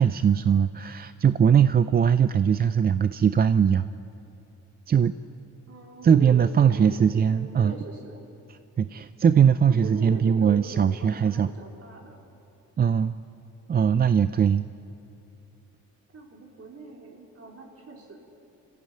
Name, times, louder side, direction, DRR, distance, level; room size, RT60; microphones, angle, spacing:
voice 1, 0.0-3.9 4.9-5.1 6.0-7.7 8.8-11.5 12.8-13.1 13.7-14.6, right 7 dB, 30° right, 13 dB, 0.5 m, -20 dB
voice 2, 5.7-8.2 9.7-12.2 16.1-18.2, right 2 dB, 50° right, 0 dB, 4.3 m, -43 dB
25.0 x 14.5 x 8.9 m, 2.9 s
cardioid pair, 90°, 30 cm